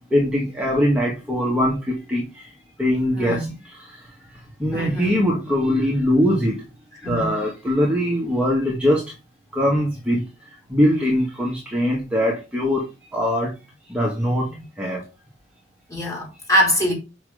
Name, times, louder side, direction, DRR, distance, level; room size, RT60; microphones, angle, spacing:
voice 1, 0.1-2.5 2.8-4.1 4.6-6.6 7.1-9.0 9.5-12.8 13.1-13.5 13.9-14.5 14.8-15.1, equal, 5° right, 1.7 m, -22 dB
voice 2, 3.1-3.5 4.7-5.2 7.0-7.3 15.9-16.9, equal, 20° left, 4.5 m, -23 dB
6.1 x 6.1 x 5.0 m
head